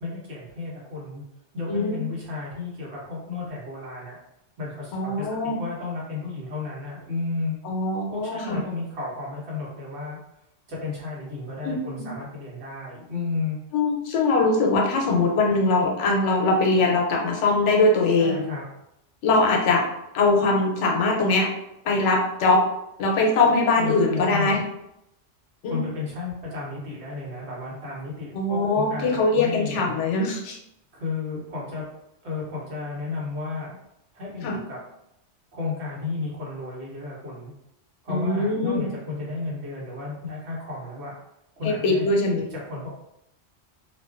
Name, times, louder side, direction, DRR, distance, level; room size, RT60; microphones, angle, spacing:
voice 1, 0.0-1.2 1.5-4.2 4.6-7.6 8.1-10.2 10.7-13.6 18.2-18.6 23.8-24.6 25.7-30.0 30.9-31.8 32.2-33.8 34.1-34.8 35.5-37.5 38.0-41.2 41.6-42.0 42.5-42.9, left 4 dB, 65° right, -6 dB, 1.2 m, -33 dB
voice 2, 1.7-2.0 4.9-5.6 7.6-8.6 11.6-12.1 13.7-18.4 19.2-19.9 20.1-21.5 21.8-22.6 23.0-24.6 25.6-25.8 28.3-30.6 34.4-34.6 38.1-38.9 41.6-42.4, left 3 dB, 80° left, 0 dB, 0.9 m, -22 dB
2.4 x 2.3 x 2.4 m, 0.82 s
omnidirectional pair, 1.2 m